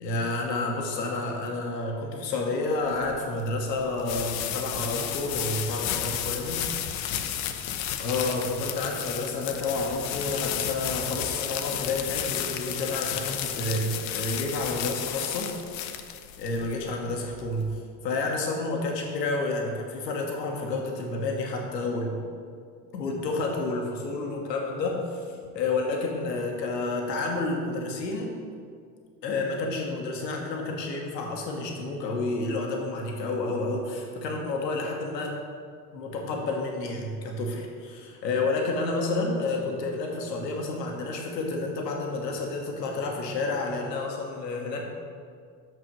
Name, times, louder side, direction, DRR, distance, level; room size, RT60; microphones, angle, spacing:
voice 1, 0.0-6.7 8.0-15.5 16.4-22.2 22.9-28.3 29.2-35.3 35.9-44.9, left 2 dB, 90° left, 0 dB, 1.2 m, -30 dB
sound 1, 2.9-17.8, left 10 dB, 65° left, 0.8 m, -33 dB
6.2 x 6.1 x 6.1 m, 2.2 s
hypercardioid pair, 70°, 48 cm